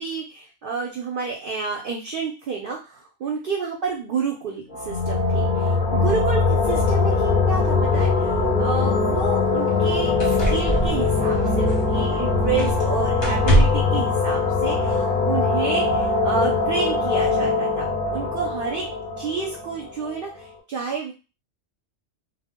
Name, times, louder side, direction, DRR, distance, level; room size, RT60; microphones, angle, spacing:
voice 1, 0.0-18.9 19.2-21.1, right 5 dB, 60° right, 0 dB, 0.6 m, -30 dB
sound 1, 4.7-20.3, left 4 dB, 55° left, 0.7 m, -22 dB
sound 2, 8.9-9.0 9.7-9.8 10.2-12.1 12.6-12.9 13.2-14.0 15.1-15.2, right 1 dB, 25° left, 0.8 m, -24 dB
2.1 x 2.1 x 3.5 m, 0.31 s
omnidirectional pair, 1.3 m